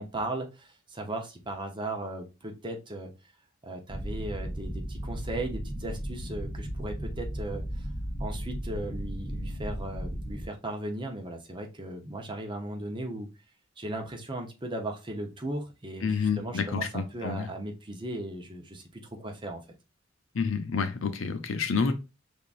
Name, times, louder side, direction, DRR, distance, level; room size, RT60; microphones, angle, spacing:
voice 1, 0.0-3.1 3.6-7.9 8.2-13.3 13.8-19.6, right 1 dB, 25° right, 0.9 m, -37 dB
sound 1, 3.9-10.4, equal, 20° left, 2.3 m, -35 dB
voice 2, 16.0-17.5 20.3-21.9, left 5 dB, 85° left, 0.7 m, -29 dB
5.6 x 3.5 x 2.5 m
head